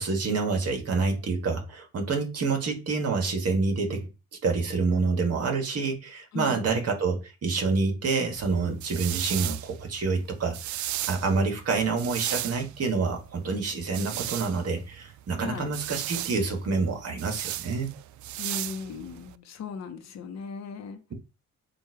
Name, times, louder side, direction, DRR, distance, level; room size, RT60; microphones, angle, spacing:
voice 1, 0.0-4.1 4.4-10.6 11.1-17.9, right 4 dB, 55° right, 1.8 m, -27 dB
voice 2, 6.3-6.7 15.4-15.7 18.4-21.0, left 5 dB, 60° left, 1.1 m, -37 dB
sound 1, 8.4-19.3, right 14 dB, 70° right, 0.4 m, -36 dB
7.4 x 2.6 x 4.9 m
cardioid pair, 90°, 30 cm